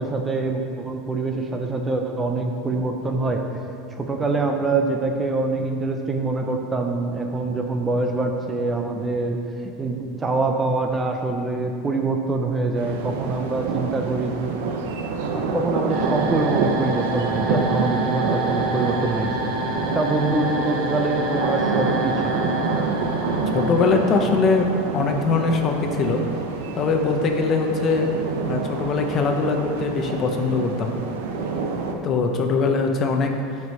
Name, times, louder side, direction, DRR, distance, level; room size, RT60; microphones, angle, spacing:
voice 1, 0.0-3.4 3.9-14.6 15.3-22.5, right 3 dB, 15° right, 3 dB, 0.6 m, -25 dB
sound 1, 12.8-31.9, right 4 dB, 85° right, 0.9 m, -27 dB
sound 2, 15.9-24.8, right 1 dB, 60° right, 1.7 m, -29 dB
voice 2, 23.5-26.2 26.8-28.1 28.4-30.9 32.0-33.3, left 4 dB, 30° left, 4 dB, 0.8 m, -22 dB
9.5 x 4.8 x 5.6 m, 2.5 s
supercardioid pair, 145°, 0 cm